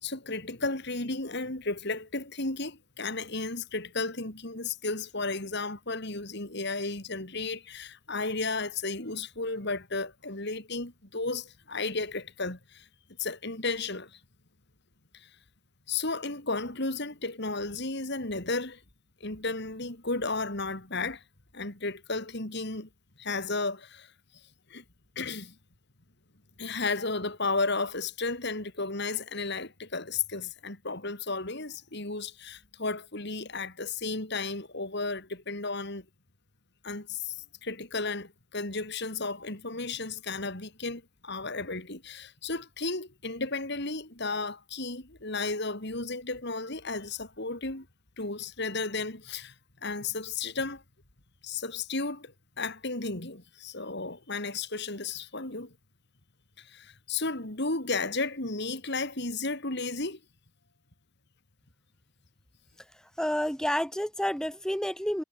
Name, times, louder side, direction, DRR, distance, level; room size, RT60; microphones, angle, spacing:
voice 1, 0.0-12.9 13.2-14.2 15.1-15.3 15.9-18.8 19.2-21.2 21.5-22.9 23.2-24.1 24.7-24.8 25.1-25.6 26.6-36.0 36.8-47.9 48.2-49.5 49.8-50.8 51.4-55.7 56.6-60.2, left 3 dB, 50° left, 3.6 m, -33 dB
voice 2, 62.9-65.2, equal, 5° left, 1.1 m, -30 dB
head